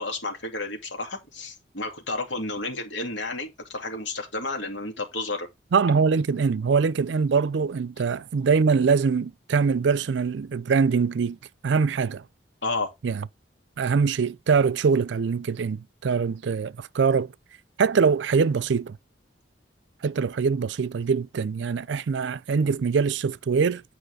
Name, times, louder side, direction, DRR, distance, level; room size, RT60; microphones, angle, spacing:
voice 1, 0.0-5.5 12.6-12.9, left 2 dB, 80° left, 2.6 m, -31 dB
voice 2, 5.7-11.4 11.6-12.2 13.0-13.2 13.8-17.3 17.8-19.0 20.0-23.8, right 5 dB, 75° right, 0.4 m, -23 dB
9.2 x 4.7 x 4.8 m
head